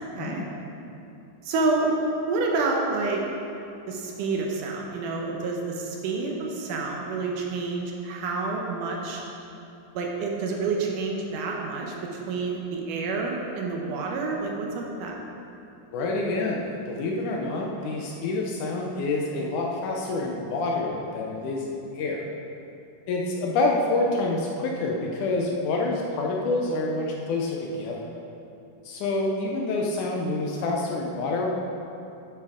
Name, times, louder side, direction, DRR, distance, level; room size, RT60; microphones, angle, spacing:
voice 1, 0.2-0.5 15.9-22.2 23.1-28.1 28.8-31.5, left 2 dB, 75° left, -1 dB, 1.8 m, -27 dB
voice 2, 1.4-3.2 3.9-9.2 9.9-15.2, right 3 dB, 75° right, 0 dB, 2.2 m, -28 dB
10.5 x 8.0 x 3.6 m, 2.8 s
omnidirectional pair, 4.3 m